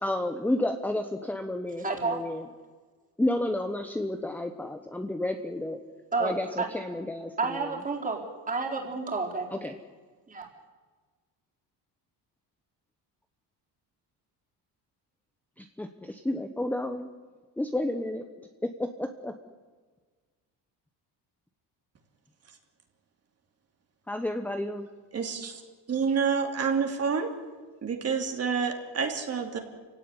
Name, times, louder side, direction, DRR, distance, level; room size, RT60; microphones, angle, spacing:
voice 1, 0.0-2.5 3.2-5.8 6.2-7.8 9.5-9.8 15.6-17.1 17.6-19.3 24.1-24.9, left 1 dB, 5° left, 6 dB, 1.0 m, -31 dB
voice 2, 1.8-2.2 6.1-6.7 7.4-8.2 8.5-9.5 10.3-10.5, right 4 dB, 20° right, 1 dB, 4.2 m, -30 dB
voice 3, 25.1-25.6 25.9-27.3 27.8-29.6, right 6 dB, 35° right, 4 dB, 3.1 m, -28 dB
29.5 x 17.0 x 9.8 m, 1.4 s
cardioid pair, 160°, 40 cm